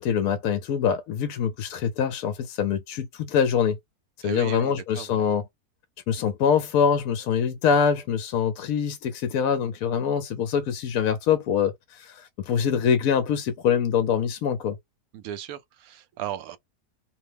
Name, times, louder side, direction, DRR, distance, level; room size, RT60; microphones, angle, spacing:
voice 1, 0.0-3.8 4.2-5.4 6.1-14.8, left 7 dB, 70° left, 0.9 m, -24 dB
voice 2, 4.2-5.2 15.1-16.6, right 11 dB, 70° right, 1.0 m, -36 dB
2.9 x 2.0 x 3.2 m
omnidirectional pair, 1.7 m